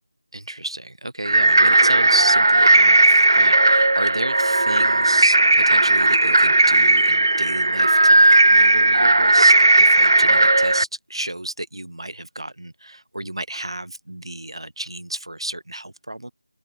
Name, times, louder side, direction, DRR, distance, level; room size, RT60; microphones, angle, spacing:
voice 1, 0.3-16.3, right 1 dB, 90° right, 3.4 m, -31 dB
sound 1, 1.2-10.8, right 2 dB, 50° right, 0.6 m, -15 dB
figure-of-eight pair, 180°, 3 cm